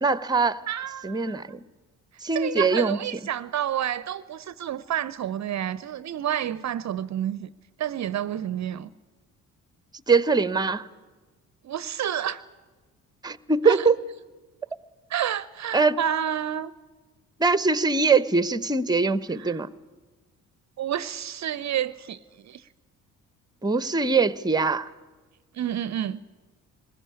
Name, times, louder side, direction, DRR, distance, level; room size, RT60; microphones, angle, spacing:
voice 1, 0.0-0.6 1.0-1.6 2.2-3.0 10.1-10.9 13.2-13.9 15.7-15.9 17.4-19.7 23.6-24.9, right 4 dB, 10° right, 16 dB, 0.9 m, -22 dB
voice 2, 0.7-1.5 2.3-7.5 7.8-8.9 11.6-12.4 13.6-13.9 15.1-16.7 19.4-19.6 20.8-22.7 25.5-26.2, right 10 dB, 45° right, 16 dB, 0.7 m, -29 dB
21.5 x 19.5 x 9.8 m, 1.3 s
hypercardioid pair, 45°, 41 cm